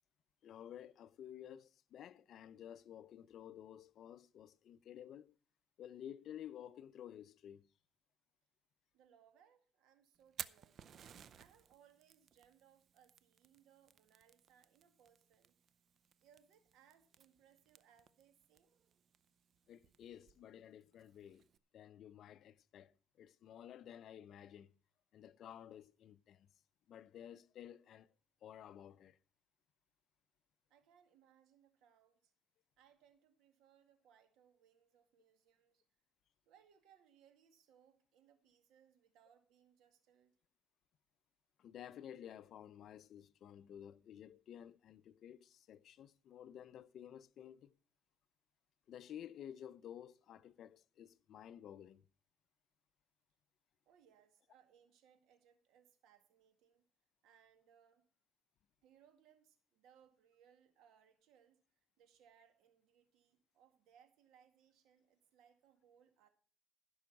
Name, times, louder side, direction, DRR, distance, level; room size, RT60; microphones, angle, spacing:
voice 1, 0.4-5.4 5.8-7.7 19.7-21.5 21.7-24.7 25.1-26.5 26.9-28.1 28.4-29.2 41.6-47.7 48.9-52.0, left 10 dB, 55° left, 0.6 m, -53 dB
voice 2, 8.9-10.8 11.3-15.5 16.2-18.7 30.7-32.3 32.8-35.8 36.5-40.3 53.9-56.8 57.2-58.0 58.8-61.6 62.0-66.3, right 8 dB, 75° right, 2.0 m, -69 dB
Fire, 10.1-21.6, right 8 dB, 45° right, 0.6 m, -57 dB
15.5 x 6.3 x 5.9 m
cardioid pair, 125°, 0 cm